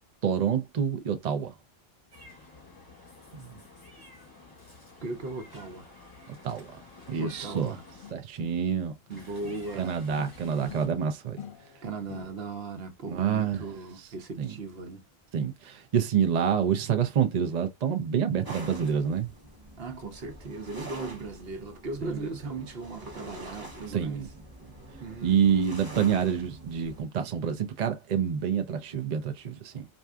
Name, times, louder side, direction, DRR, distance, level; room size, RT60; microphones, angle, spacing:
voice 1, 0.2-1.5 6.4-6.7 7.1-7.7 8.1-8.9 9.8-11.4 13.1-13.6 14.4-14.5 15.3-19.3 22.0-22.2 23.9-24.3 25.2-29.9, right 7 dB, 45° right, 0.7 m, -27 dB
Meow, 2.1-8.1 9.1-10.9, left 2 dB, 20° left, 1.8 m, -51 dB
voice 2, 3.3-3.6 5.0-5.9 7.2-7.8 9.1-10.0 11.8-15.0 19.8-24.3 25.0-25.7, right 3 dB, 70° right, 1.1 m, -38 dB
sound 1, 8.0-9.8 10.1-12.7, left 9 dB, 60° left, 0.8 m, -47 dB
sound 2, 18.4-27.0, right 2 dB, 20° right, 1.4 m, -46 dB
4.5 x 2.6 x 2.3 m
omnidirectional pair, 1.0 m